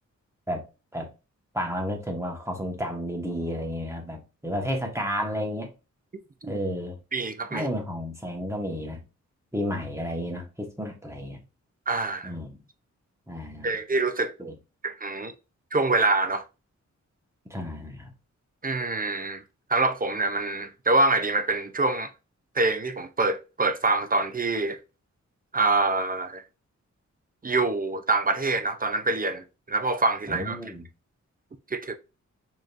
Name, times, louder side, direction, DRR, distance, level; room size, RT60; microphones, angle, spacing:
voice 1, 1.5-5.7 6.4-7.0 7.5-9.0 9.5-11.4 12.2-12.6 13.3-13.8 14.4-14.5 17.5-18.1 30.3-30.9, equal, 10° right, 1.3 m, -32 dB
voice 2, 7.1-7.7 11.9-12.3 13.6-14.3 14.8-15.3 15.7-16.4 18.6-19.4 19.7-22.1 22.6-24.8 25.5-26.4 27.4-30.6 31.7-31.9, right 3 dB, 30° right, 0.6 m, -25 dB
5.0 x 3.0 x 2.5 m
cardioid pair, 75°, 30 cm